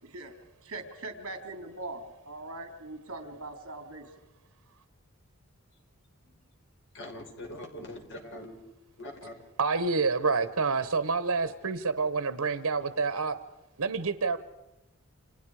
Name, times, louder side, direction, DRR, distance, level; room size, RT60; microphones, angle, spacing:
voice 1, 0.0-0.3 0.6-4.1, right 2 dB, 65° right, 5 dB, 3.6 m, -41 dB
voice 2, 6.9-8.6 9.0-9.3, left 1 dB, 55° left, 2 dB, 5.3 m, -43 dB
voice 3, 9.6-13.4 13.8-14.4, right 4 dB, 85° right, 12 dB, 1.2 m, -28 dB
29.5 x 27.0 x 5.0 m, 1.0 s
head